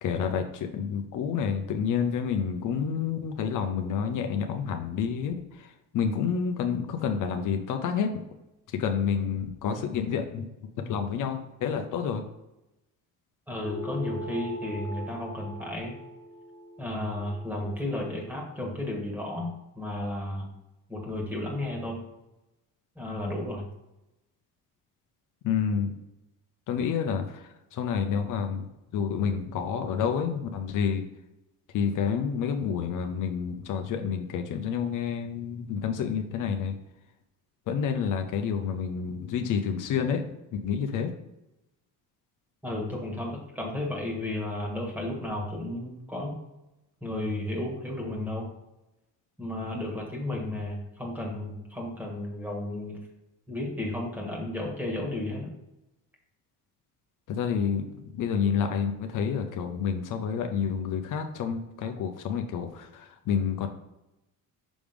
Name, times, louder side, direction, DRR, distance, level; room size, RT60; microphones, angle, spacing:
voice 1, 0.0-5.3 5.9-8.2 8.7-10.5 10.9-12.2 25.4-25.9 26.7-27.4 27.7-28.7 28.9-31.0 31.7-36.7 37.7-40.2 40.6-41.1 57.3-57.8 58.1-63.7, left 7 dB, 65° left, 5 dB, 0.7 m, -29 dB
voice 2, 13.5-15.9 16.8-19.5 19.7-20.5 20.9-22.0 22.9-23.7 42.6-46.4 47.0-48.5 49.4-53.0 53.5-55.5, left 1 dB, 5° right, -1 dB, 1.6 m, -33 dB
sound 1, 13.6-18.4, equal, 25° left, 1.5 m, -41 dB
6.1 x 3.4 x 5.1 m, 0.95 s
cardioid pair, 125°, 34 cm